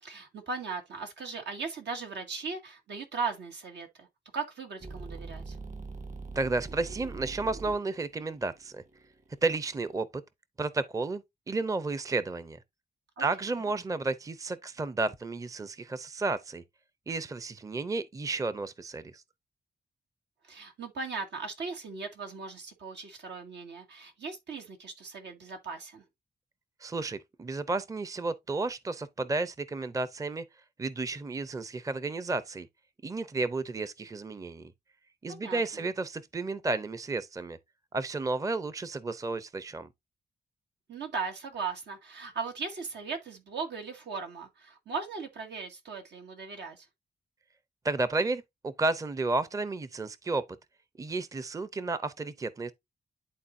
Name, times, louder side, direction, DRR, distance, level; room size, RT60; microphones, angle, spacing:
voice 1, 0.0-4.1 4.3-5.6 13.2-13.3 20.4-26.0 35.3-35.8 40.9-46.9, right 4 dB, 85° right, 2.0 m, -38 dB
sound 1, 4.8-9.9, right 3 dB, 45° right, 1.8 m, -43 dB
voice 2, 6.3-8.8 9.4-10.2 10.6-12.6 13.2-16.6 17.1-19.2 26.8-30.4 30.8-32.7 33.0-34.7 35.2-37.6 37.9-39.9 47.8-50.4 51.0-52.7, right 3 dB, 20° right, 0.5 m, -32 dB
11.5 x 3.9 x 2.6 m
cardioid pair, 100°, 18 cm